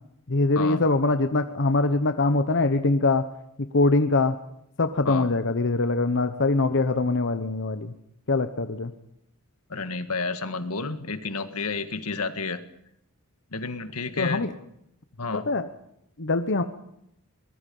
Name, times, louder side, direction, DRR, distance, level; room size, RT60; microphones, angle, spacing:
voice 1, 0.3-3.2 3.7-4.4 4.8-7.9 8.3-8.9 14.2-14.5 15.3-15.6 16.2-16.6, left 3 dB, 55° left, 8 dB, 1.0 m, -23 dB
voice 2, 9.7-12.6 13.5-14.5 15.2-15.5, left 4 dB, 85° left, 9 dB, 1.8 m, -31 dB
23.5 x 20.0 x 5.5 m, 0.77 s
head